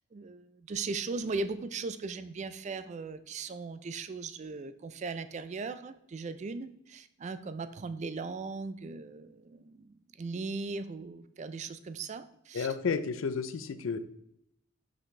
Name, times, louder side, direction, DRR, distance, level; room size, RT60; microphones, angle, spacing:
voice 1, 0.1-12.7, right 4 dB, 35° right, 12 dB, 0.3 m, -38 dB
voice 2, 12.5-14.0, left 5 dB, 70° left, 13 dB, 0.4 m, -32 dB
5.8 x 5.0 x 3.2 m, 0.77 s
head